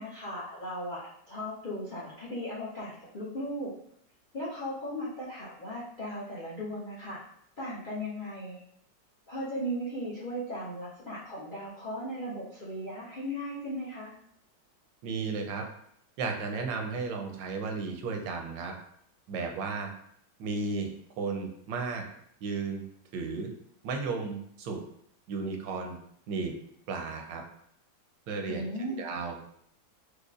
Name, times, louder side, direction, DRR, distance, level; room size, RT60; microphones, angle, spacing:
voice 1, 0.0-3.7 4.3-7.2 7.6-8.6 9.3-14.1 28.5-29.0, equal, 60° left, -8 dB, 0.5 m, -37 dB
voice 2, 15.0-15.6 16.2-18.7 19.3-19.9 20.4-20.9 21.2-22.0 22.4-22.8 23.1-23.5 23.8-24.8 25.3-26.0 26.3-26.5 26.9-27.4 28.3-28.6 29.0-29.4, right 4 dB, 90° right, 3 dB, 1.3 m, -34 dB
4.7 x 2.3 x 2.4 m, 0.70 s
omnidirectional pair, 2.0 m